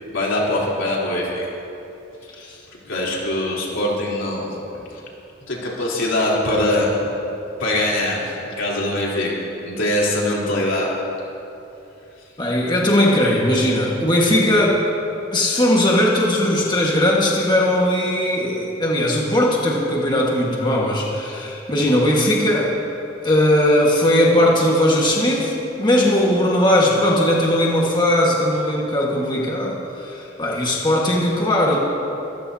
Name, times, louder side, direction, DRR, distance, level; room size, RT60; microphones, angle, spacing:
voice 1, 0.1-1.5 2.4-2.5 2.9-4.5 5.5-7.0 7.6-9.4 9.6-10.9, left 1 dB, 85° left, -5 dB, 3.6 m, -22 dB
voice 2, 12.4-14.9 15.3-22.7 23.2-31.8, left 1 dB, 25° left, -3 dB, 1.6 m, -18 dB
24.5 x 14.5 x 2.8 m, 3.0 s
head